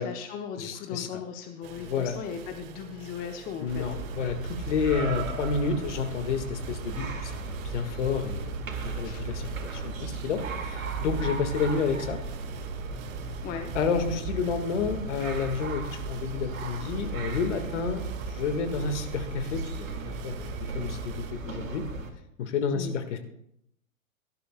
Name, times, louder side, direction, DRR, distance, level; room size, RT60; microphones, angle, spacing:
voice 1, 0.0-3.9 9.0-9.2 13.4-13.7 22.7-22.9, left 8 dB, 20° left, 5 dB, 0.8 m, -37 dB
voice 2, 0.6-1.2 1.8-2.2 3.6-8.6 8.8-12.2 13.7-21.8 22.4-23.2, left 5 dB, 55° left, 7 dB, 1.7 m, -30 dB
sound 1, 1.6-21.3, right 11 dB, 40° right, 0.9 m, -47 dB
sound 2, 3.7-22.1, right 3 dB, 70° right, 2.1 m, -35 dB
17.5 x 11.5 x 2.2 m, 0.74 s
figure-of-eight pair, 115°, 42 cm